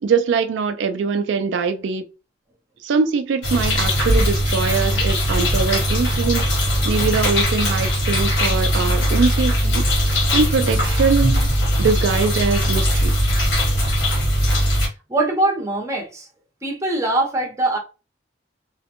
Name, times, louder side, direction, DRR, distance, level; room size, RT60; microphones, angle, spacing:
voice 1, 0.0-2.0 2.8-6.4 6.9-9.8 10.3-11.5 11.8-13.1, right 5 dB, 85° right, 0.4 m, -22 dB
sound 1, 3.4-14.9, equal, 85° left, 1.2 m, -19 dB
voice 2, 15.1-16.3 16.6-17.8, right 2 dB, 15° right, 0.7 m, -22 dB
2.5 x 2.1 x 2.9 m
head